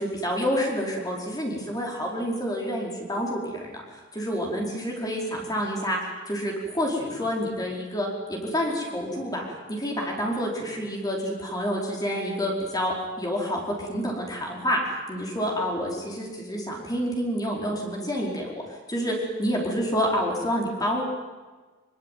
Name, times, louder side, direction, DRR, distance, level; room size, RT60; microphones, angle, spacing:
voice 1, 0.0-6.0 6.3-14.8 15.1-18.6 18.9-21.0, equal, 20° left, -1 dB, 5.0 m, -28 dB
24.5 x 24.5 x 9.4 m, 1.3 s
head